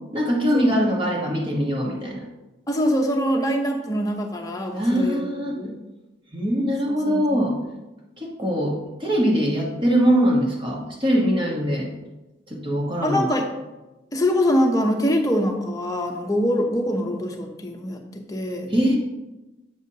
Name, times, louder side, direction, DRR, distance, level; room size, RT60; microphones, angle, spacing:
voice 1, 0.1-2.2 4.7-5.6 6.3-7.5 8.2-11.9 12.5-13.3 18.7-19.0, equal, 25° right, -2 dB, 1.3 m, -22 dB
voice 2, 2.7-5.2 5.5-5.7 7.1-7.4 13.0-13.5 14.1-18.7, equal, 20° left, 2 dB, 0.8 m, -23 dB
8.2 x 6.9 x 2.8 m, 1.0 s
head